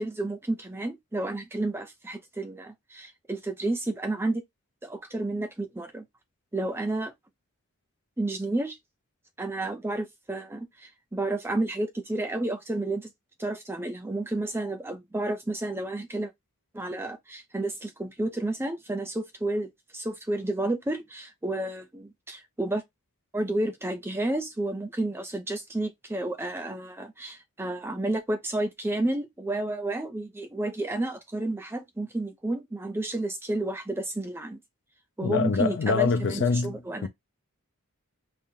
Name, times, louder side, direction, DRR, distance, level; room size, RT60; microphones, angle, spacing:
voice 1, 0.0-4.4 4.8-6.0 6.5-7.1 8.2-8.8 9.4-13.1 13.4-16.3 16.7-22.8 23.3-34.6 35.2-37.1, right 2 dB, 10° right, 0.5 m, -31 dB
voice 2, 35.2-37.1, left 5 dB, 50° left, 0.5 m, -25 dB
4.1 x 2.0 x 3.6 m
head